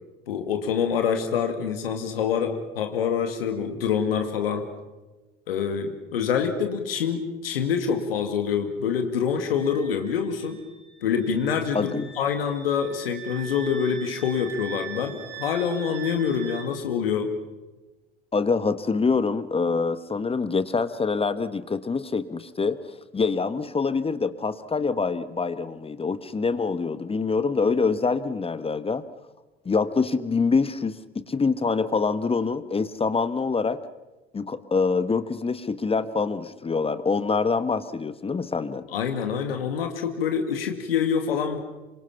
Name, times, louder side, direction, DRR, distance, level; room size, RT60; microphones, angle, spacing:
voice 1, 0.3-4.7 5.5-10.6 11.0-17.3 38.9-41.6, left 7 dB, 75° left, 6 dB, 2.0 m, -26 dB
Wind instrument woodwind instrument, 9.4-16.7, right 7 dB, 55° right, 6.3 m, -42 dB
voice 2, 11.7-12.1 18.3-29.0 29.6-33.8 34.3-38.8, left 4 dB, 20° left, 13 dB, 1.2 m, -25 dB
27.0 x 24.0 x 5.8 m, 1.1 s
figure-of-eight pair, 65°, 29 cm